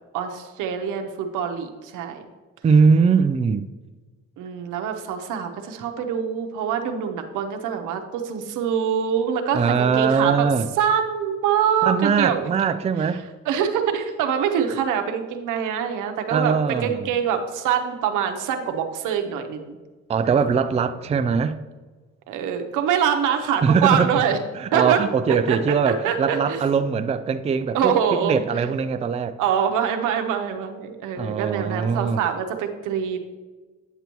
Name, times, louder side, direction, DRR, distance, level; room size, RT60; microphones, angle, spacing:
voice 1, 0.1-2.3 4.4-10.5 10.8-12.5 13.5-19.8 22.3-24.4 24.7-26.7 27.7-28.7 29.4-33.3, right 8 dB, 90° right, 0.8 m, -24 dB
voice 2, 2.6-3.7 9.5-10.7 11.8-13.2 16.3-17.1 20.1-21.6 23.6-24.1 24.6-27.9 28.2-29.4 31.2-32.2, right 5 dB, 20° right, 0.3 m, -21 dB
9.2 x 6.7 x 3.0 m
cardioid pair, 90°, 30 cm